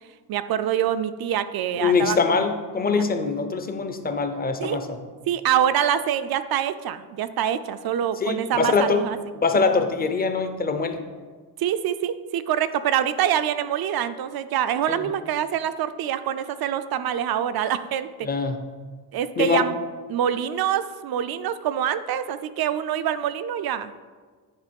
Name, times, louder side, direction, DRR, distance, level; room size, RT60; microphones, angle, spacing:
voice 1, 0.3-2.4 4.6-4.8 5.3-9.2 11.6-18.1 19.1-19.8 20.1-24.0, right 10 dB, 60° right, 12 dB, 0.5 m, -25 dB
voice 2, 1.8-5.0 8.2-9.1 9.3-11.0 14.9-15.1 18.2-18.6 19.4-19.7, left 4 dB, 25° left, 7 dB, 0.5 m, -23 dB
9.9 x 3.4 x 5.2 m, 1.5 s
cardioid pair, 135°, 41 cm